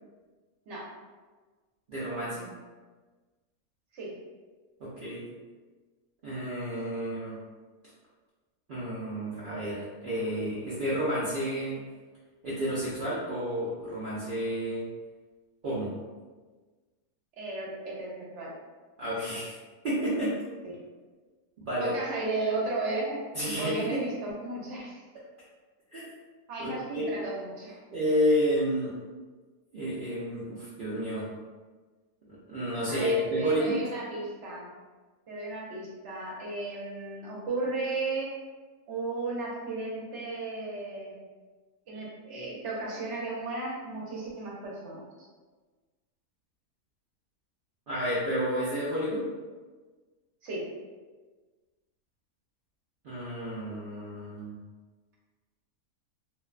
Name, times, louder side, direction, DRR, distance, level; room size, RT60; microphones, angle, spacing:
voice 1, 1.9-2.5 4.8-5.3 6.2-7.4 8.7-11.8 12.4-14.8 15.6-15.9 19.0-19.6 19.8-20.4 21.6-21.9 23.3-24.0 25.9-26.1 26.6-27.2 27.9-28.9 29.7-31.3 32.3-33.9 47.9-49.3 53.0-54.6, equal, 80° right, -9 dB, 0.4 m, -30 dB
voice 2, 17.4-18.5 20.6-20.7 21.8-23.2 23.6-25.0 26.5-27.8 32.9-34.7 35.3-38.3 38.9-41.2 41.9-45.1 50.4-50.7, right 2 dB, 60° right, -4 dB, 0.8 m, -34 dB
2.5 x 2.2 x 2.3 m, 1.3 s
omnidirectional pair, 1.5 m